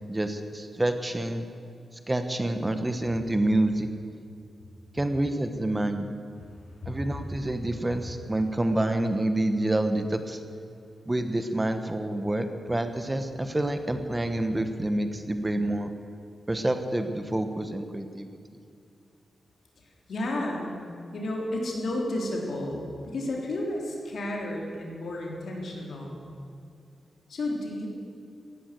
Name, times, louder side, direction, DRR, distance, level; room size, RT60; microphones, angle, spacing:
voice 1, 0.0-1.5 2.1-3.9 4.9-6.1 6.9-10.4 11.0-15.9 16.5-18.3, right 1 dB, 15° right, 8 dB, 1.2 m, -27 dB
voice 2, 20.1-20.7 21.1-26.2 27.3-27.9, left 1 dB, 75° left, -1 dB, 3.6 m, -32 dB
16.5 x 11.5 x 7.7 m, 2.5 s
cardioid pair, 85°, 0 cm